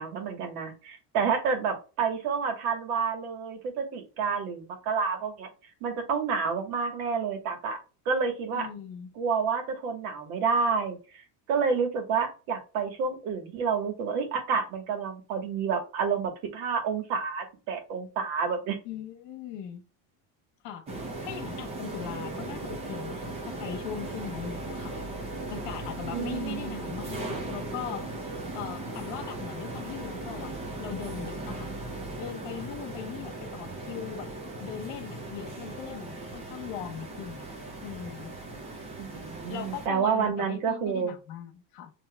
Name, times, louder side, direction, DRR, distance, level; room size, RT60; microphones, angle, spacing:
voice 1, 0.0-5.5 5.8-7.8 8.0-8.7 9.1-11.2 11.5-18.8 26.1-26.8 39.0-41.1, right 5 dB, 80° right, 1.5 m, -29 dB
voice 2, 8.5-9.1 18.8-19.8 20.6-25.0 25.5-28.1 28.5-31.7 32.2-34.3 34.6-37.5 37.8-38.3 39.5-41.9, left 9 dB, 65° left, 1.1 m, -39 dB
sound 1, 20.9-39.9, right 2 dB, 15° right, 0.4 m, -38 dB
6.8 x 2.9 x 2.3 m
cardioid pair, 180°, 45 cm